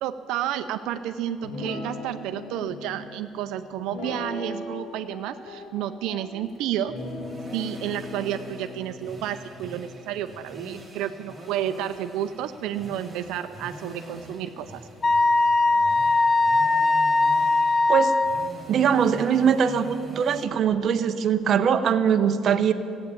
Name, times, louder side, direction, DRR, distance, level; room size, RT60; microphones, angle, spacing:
voice 1, 0.0-6.9 7.5-14.8, right 11 dB, 85° right, 9 dB, 0.5 m, -31 dB
Guitar, 1.4-2.6 3.9-4.8 5.1-6.3 6.9-10.4, left 2 dB, 70° left, 2.2 m, -38 dB
sound 1, 6.4-20.5, right 1 dB, ahead, 1.7 m, -44 dB
Wind instrument woodwind instrument, 15.0-18.5, left 3 dB, 30° left, 0.4 m, -20 dB
voice 2, 18.7-22.7, right 7 dB, 45° right, 8 dB, 0.7 m, -21 dB
14.5 x 8.7 x 8.5 m, 2.5 s
cardioid pair, 145°, 0 cm